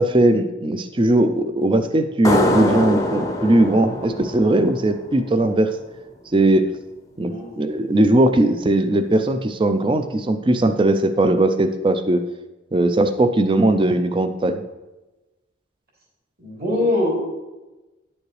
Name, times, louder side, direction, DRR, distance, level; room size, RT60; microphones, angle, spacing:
voice 1, 0.0-5.7 6.3-6.7 7.2-12.2 12.7-14.6, right 1 dB, 25° right, 9 dB, 0.4 m, -19 dB
sound 1, 2.2-5.6, left 1 dB, 15° left, 0.6 m, -23 dB
voice 2, 16.4-17.2, left 2 dB, 50° right, -4 dB, 3.2 m, -22 dB
10.5 x 7.1 x 3.3 m, 1.1 s
head